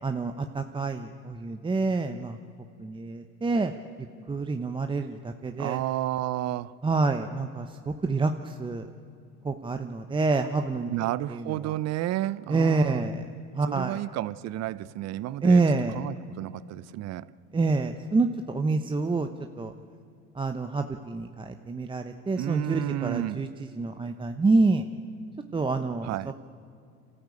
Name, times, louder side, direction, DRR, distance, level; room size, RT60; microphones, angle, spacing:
voice 1, 0.0-2.4 2.8-3.7 4.3-5.8 6.8-8.9 9.4-11.7 12.5-13.3 13.5-14.0 15.4-16.0 17.5-19.3 19.6-19.7 20.3-23.5 23.8-24.8 25.5-26.3, right 3 dB, 15° right, 6 dB, 0.9 m, -27 dB
voice 2, 5.6-6.8 10.9-13.1 13.7-15.6 15.9-17.3 22.4-23.5 26.0-26.3, right 14 dB, 50° right, 19 dB, 0.8 m, -31 dB
29.5 x 13.5 x 8.5 m, 2.5 s
supercardioid pair, 100°, 34 cm